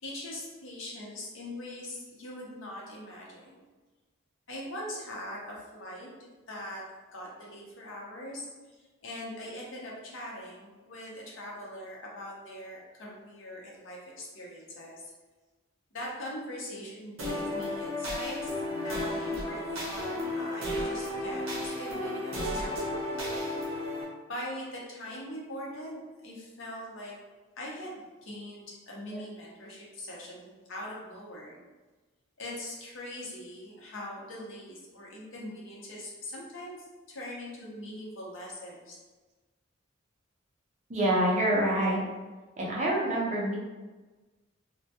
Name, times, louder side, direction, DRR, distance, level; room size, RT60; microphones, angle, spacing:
voice 1, 0.0-3.6 4.5-6.8 7.1-8.5 9.0-15.0 15.9-18.5 18.8-23.1 24.3-27.2 27.6-27.9 28.2-31.6 32.4-36.8 37.1-39.0, left 1 dB, 70° left, -3 dB, 0.7 m, -42 dB
sound 1, 17.2-24.0, left 1 dB, 75° right, 0.6 m, -33 dB
voice 2, 40.9-42.0 42.6-43.6, right 1 dB, 35° right, -4 dB, 0.5 m, -26 dB
2.1 x 2.1 x 2.8 m, 1.2 s
head